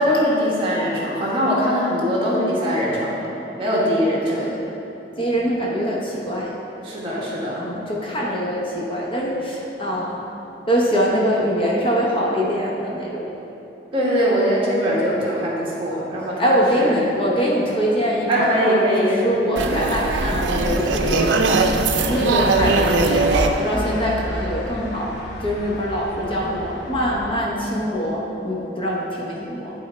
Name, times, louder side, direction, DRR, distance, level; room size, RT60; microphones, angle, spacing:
voice 1, 0.0-3.3 3.6-4.5 6.8-7.7 13.9-17.0 18.3-19.2, equal, 30° right, -6 dB, 1.5 m, -21 dB
voice 2, 4.3-4.6 5.2-6.5 7.6-10.3 10.7-13.3 16.4-21.4 22.1-25.1 25.4-29.7, equal, 30° left, -4 dB, 0.9 m, -23 dB
sound 1, 19.6-24.7, right 3 dB, 85° right, 0.5 m, -21 dB
sound 2, 21.9-27.4, left 1 dB, 70° left, 0.8 m, -34 dB
10.5 x 3.6 x 4.4 m, 2.9 s
head